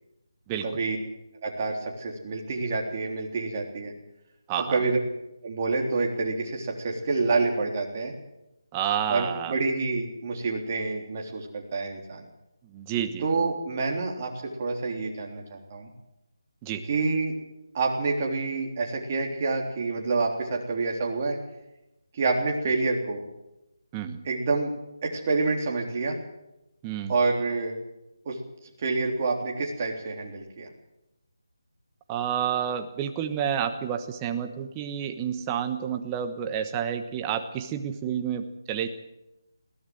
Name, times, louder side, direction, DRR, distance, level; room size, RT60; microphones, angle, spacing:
voice 1, 0.6-1.0 1.4-3.9 4.6-5.0 5.4-8.1 9.1-12.2 13.2-15.9 16.9-17.3 17.7-21.4 22.1-23.2 24.2-24.7 25.0-26.2 27.1-27.8 28.3-28.4 28.8-30.7, right 3 dB, 30° right, 0 dB, 3.6 m, -27 dB
voice 2, 8.7-9.6 12.7-13.2 16.6-16.9 23.9-24.2 26.8-27.1 32.1-38.9, right 9 dB, 15° right, 8 dB, 1.2 m, -29 dB
21.5 x 16.0 x 7.8 m, 0.94 s
figure-of-eight pair, 165°, 2 cm